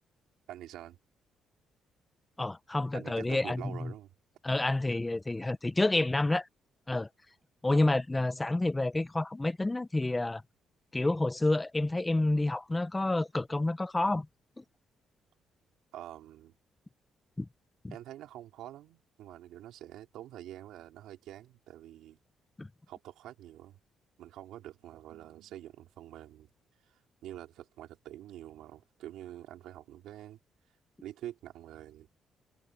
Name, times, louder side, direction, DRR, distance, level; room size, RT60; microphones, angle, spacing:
voice 1, 0.5-1.0 2.9-4.1 7.7-7.8 15.9-16.5 17.9-22.2 22.9-23.8 24.2-26.5 26.9-30.4 31.0-32.1, right 13 dB, 85° right, 3.0 m, -46 dB
voice 2, 2.4-3.9 4.4-6.5 6.9-7.1 7.6-10.4 10.9-14.3 14.6-14.7 17.4-17.5 17.8-17.9 22.6-22.7, left 2 dB, 15° left, 1.2 m, -29 dB
cardioid pair, 90°, 0 cm